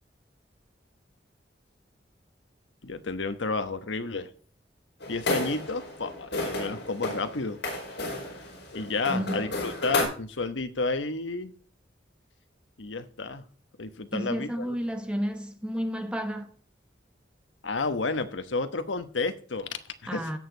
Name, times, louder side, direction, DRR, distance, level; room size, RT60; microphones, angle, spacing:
voice 1, 2.8-4.3 5.1-7.6 8.7-11.5 12.8-13.4 13.8-14.7 17.6-20.3, left 3 dB, 90° left, 1.1 m, -31 dB
sound 1, 5.0-10.0, left 2 dB, 70° left, 5.0 m, -33 dB
voice 2, 9.1-9.4 14.1-16.5 20.1-20.4, equal, 5° right, 1.1 m, -31 dB
16.5 x 6.6 x 3.9 m
head